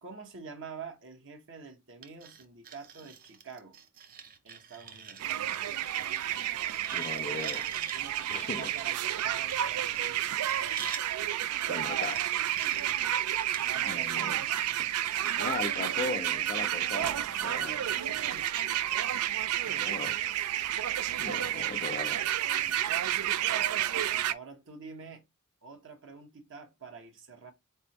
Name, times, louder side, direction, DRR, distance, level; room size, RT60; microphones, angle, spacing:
voice 1, 0.0-3.8 4.4-5.3 7.9-10.4 13.6-14.6 17.4-18.7 24.3-25.2 25.6-27.5, right 5 dB, 60° right, 1.1 m, -47 dB
sound 1, 2.0-11.0 12.0-18.7, right 7 dB, 40° right, 0.6 m, -46 dB
sound 2, 5.2-24.3, right 12 dB, 80° right, 0.4 m, -31 dB
voice 2, 6.9-7.7 8.3-8.7 11.4-12.5 13.9-14.4 15.4-17.8 19.7-20.2 21.2-22.3, left 4 dB, 30° left, 0.4 m, -38 dB
4.3 x 3.4 x 2.9 m
head